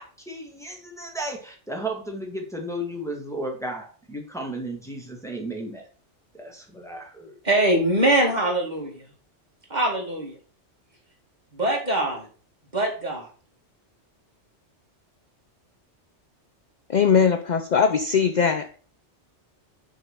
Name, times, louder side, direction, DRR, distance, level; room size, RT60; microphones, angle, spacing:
voice 1, 0.0-5.9 6.3-7.3, right 1 dB, 5° left, 0 dB, 1.6 m, -34 dB
voice 2, 7.4-9.0 9.7-10.4 11.5-12.3 12.7-13.3, right 1 dB, 40° right, 0 dB, 2.2 m, -23 dB
voice 3, 16.9-18.7, left 6 dB, 50° left, 9 dB, 0.6 m, -20 dB
6.4 x 4.1 x 6.3 m, 0.41 s
omnidirectional pair, 1.2 m